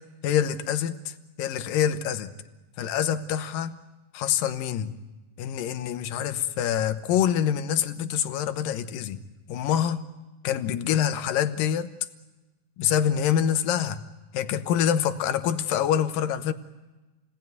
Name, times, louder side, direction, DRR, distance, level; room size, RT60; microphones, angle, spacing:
voice 1, 0.2-2.3 2.8-3.8 4.1-4.9 5.4-9.2 9.5-10.1 10.4-11.9 12.8-14.0 14.3-16.5, left 9 dB, 80° left, 9 dB, 2.7 m, -26 dB
28.5 x 19.5 x 9.4 m, 1.1 s
omnidirectional pair, 4.1 m